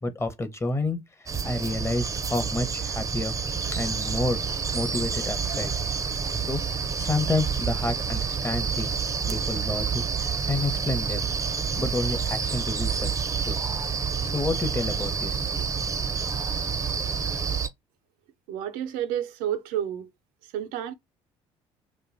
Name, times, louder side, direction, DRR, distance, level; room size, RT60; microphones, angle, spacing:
voice 1, 0.0-3.4 3.7-4.4 4.7-5.7 6.4-11.2 11.8-13.1 13.4-13.6 14.2-15.6, left 2 dB, 20° left, 0.8 m, -30 dB
sound 1, 1.3-17.7, right 6 dB, 25° right, 0.5 m, -28 dB
voice 2, 18.5-20.1 20.4-20.9, right 10 dB, 75° right, 0.5 m, -30 dB
2.6 x 2.2 x 2.5 m
supercardioid pair, 70°, 13 cm